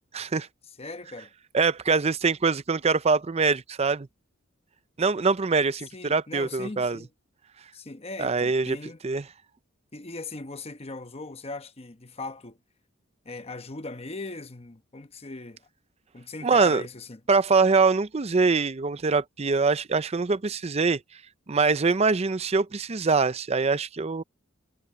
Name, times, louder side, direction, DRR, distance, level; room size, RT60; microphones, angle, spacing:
voice 1, 0.1-0.5 1.5-4.1 5.0-7.0 8.2-8.8 9.0-9.2 16.4-16.8 17.3-21.0 21.5-24.2, right 4 dB, 30° right, 0.5 m, -23 dB
voice 2, 0.8-1.3 5.9-7.1 7.7-9.0 9.9-12.6 13.2-15.7 16.1-17.2, left 3 dB, 30° left, 1.0 m, -39 dB
head